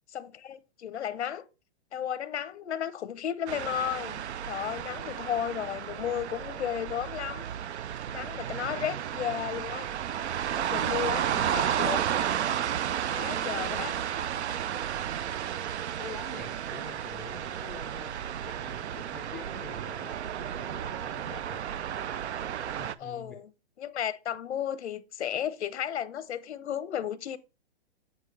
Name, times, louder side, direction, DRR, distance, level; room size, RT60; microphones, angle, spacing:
voice 1, 0.1-1.4 1.9-7.4 8.1-9.9 10.6-12.0 13.1-13.9 23.0-23.5 23.8-27.4, left 9 dB, 90° left, 0.7 m, -34 dB
sound 1, 3.5-22.9, right 9 dB, 90° right, 0.5 m, -32 dB
voice 2, 15.7-21.6 22.8-23.4, left 3 dB, ahead, 0.4 m, -46 dB
7.9 x 4.7 x 3.2 m
hypercardioid pair, 140°, 33 cm